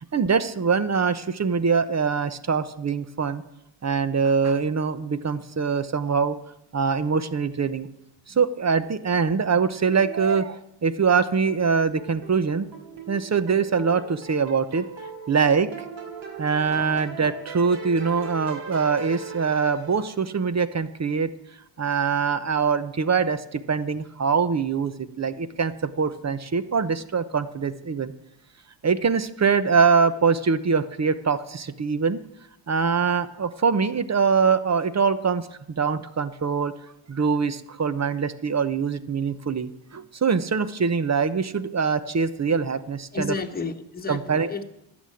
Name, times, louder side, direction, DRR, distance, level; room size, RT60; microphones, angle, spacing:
voice 1, 0.1-3.4 3.8-6.4 6.7-7.9 8.3-12.7 13.1-14.9 15.3-15.9 16.4-21.3 21.8-28.1 28.8-32.2 32.7-35.5 35.8-36.7 37.1-43.3 44.1-44.5, right 5 dB, 35° right, 12 dB, 0.9 m, -23 dB
sound 1, 11.5-20.4, right 5 dB, 65° right, 3.0 m, -40 dB
voice 2, 43.1-44.6, left 4 dB, 20° left, 5 dB, 1.3 m, -31 dB
12.5 x 7.7 x 8.5 m, 0.83 s
cardioid pair, 75°, 47 cm